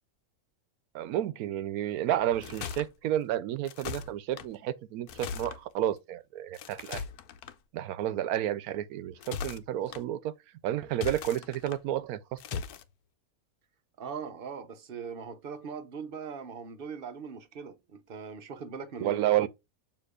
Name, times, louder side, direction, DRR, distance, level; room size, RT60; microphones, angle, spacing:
voice 1, 0.9-7.0 7.7-10.3 10.6-12.6 19.0-19.5, right 12 dB, 80° right, 1.1 m, -31 dB
sound 1, 2.2-2.9 3.6-4.5 5.1-5.6 6.5-7.5 9.0-10.0 10.9-11.8 12.4-12.8, left 7 dB, 90° left, 1.2 m, -39 dB
voice 2, 14.0-19.5, right 6 dB, 50° right, 0.8 m, -41 dB
6.8 x 2.9 x 4.8 m
omnidirectional pair, 1.5 m